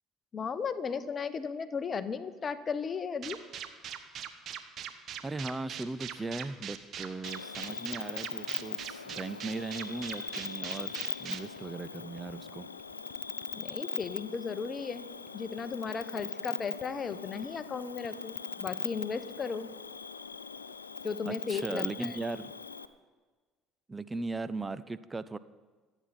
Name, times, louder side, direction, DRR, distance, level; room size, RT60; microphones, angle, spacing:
voice 1, 0.3-3.4 13.5-15.1 15.3-19.7 21.0-22.1, left 5 dB, 35° left, 13 dB, 0.9 m, -35 dB
sound 1, 3.2-13.4 13.7-13.8 14.0-14.1 14.3-14.4 14.6-15.0 15.3-15.4 15.6-15.9 16.2-16.5 16.8-16.9 17.1-17.7 18.0-18.7 19.0-19.1 21.1-21.2 21.4-21.5 21.8-21.9 22.1-22.2 22.4-22.5, right 9 dB, 50° right, 1.2 m, -41 dB
voice 2, 5.2-12.7 21.2-22.5 23.9-25.4, right 3 dB, 20° right, 15 dB, 0.7 m, -38 dB
Cricket, 7.2-22.9, left 5 dB, 85° left, 0.5 m, -40 dB
26.0 x 9.0 x 4.4 m, 1.4 s
figure-of-eight pair, 60°, 0 cm